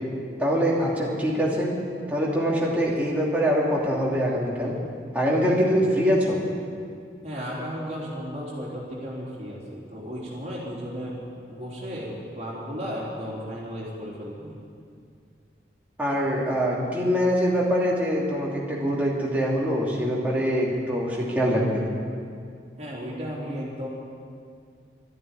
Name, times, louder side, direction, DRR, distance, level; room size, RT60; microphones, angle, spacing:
voice 1, 0.4-1.7 2.1-4.7 5.1-6.4 16.0-21.8, equal, 10° right, -5 dB, 2.9 m, -24 dB
voice 2, 7.2-11.2 11.5-14.6 22.8-23.9, equal, 40° right, -5 dB, 3.7 m, -34 dB
13.0 x 11.0 x 9.9 m, 2.3 s
head